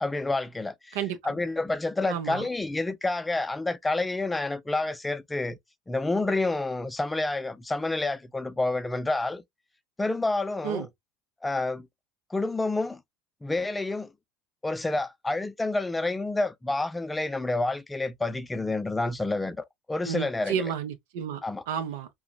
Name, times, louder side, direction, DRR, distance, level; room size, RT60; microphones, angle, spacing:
voice 1, 0.0-1.0 1.2-5.6 5.9-9.4 10.0-10.9 11.4-11.9 12.3-13.0 13.4-14.1 14.6-20.7 21.4-21.6, left 2 dB, 15° left, 0.4 m, -29 dB
voice 2, 0.9-1.3 2.1-2.5 10.6-10.9 20.0-22.1, right 8 dB, 80° right, 0.7 m, -32 dB
3.7 x 2.2 x 2.3 m
hypercardioid pair, 80°, 0 cm